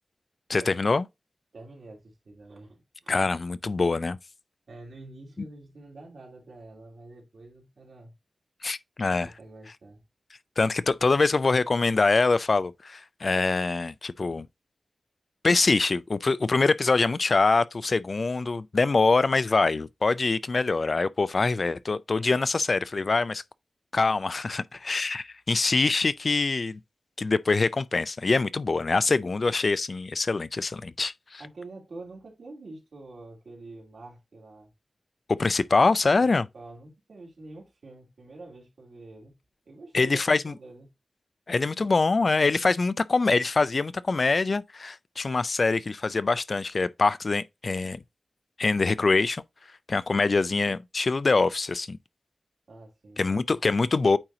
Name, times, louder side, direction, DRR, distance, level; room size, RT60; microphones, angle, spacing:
voice 1, 0.5-1.1 3.1-4.2 8.6-9.3 10.6-14.5 15.4-23.4 23.9-26.8 27.2-31.4 35.4-36.5 39.9-40.5 41.5-48.0 48.6-49.4 49.9-52.0 53.2-54.2, left 3 dB, 55° left, 0.4 m, -24 dB
voice 2, 1.5-3.1 4.7-8.1 9.1-10.0 31.4-34.7 36.2-39.4 39.7-40.9 52.7-53.2, right 2 dB, 85° right, 2.7 m, -46 dB
8.8 x 2.9 x 3.8 m
wide cardioid pair, 85°, 0 cm